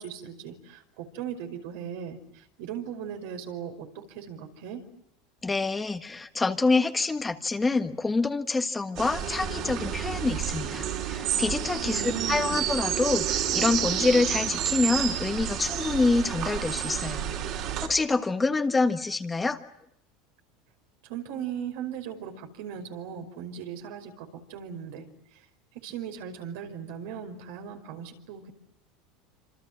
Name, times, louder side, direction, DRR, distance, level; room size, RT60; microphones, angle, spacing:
voice 1, 0.0-4.8 11.8-12.6 21.0-25.1 25.3-25.4 25.8-28.5, right 8 dB, 75° right, 4 dB, 5.3 m, -38 dB
voice 2, 5.4-17.6 17.8-19.6, left 3 dB, 15° left, 6 dB, 1.4 m, -26 dB
sound 1, 9.0-17.9, right 10 dB, 50° right, 4.8 m, -30 dB
26.5 x 26.5 x 7.7 m, 0.79 s
supercardioid pair, 135°, 0 cm